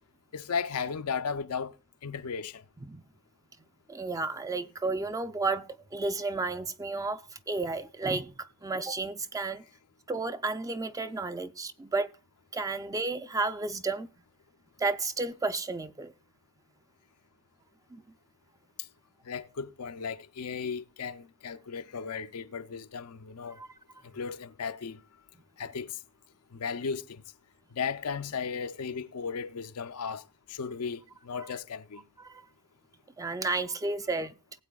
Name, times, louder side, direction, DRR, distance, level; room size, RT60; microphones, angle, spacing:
voice 1, 0.3-1.7 2.0-2.6 19.2-23.6 24.0-25.0 25.6-26.0 26.5-27.2 27.7-32.0, left 6 dB, 85° left, 0.6 m, -35 dB
voice 2, 3.9-9.6 10.1-12.1 12.5-14.1 14.8-16.1 17.9-18.0 23.6-23.7 32.2-32.4 33.2-34.3, right 3 dB, 15° right, 0.4 m, -32 dB
19.0 x 8.2 x 2.3 m
head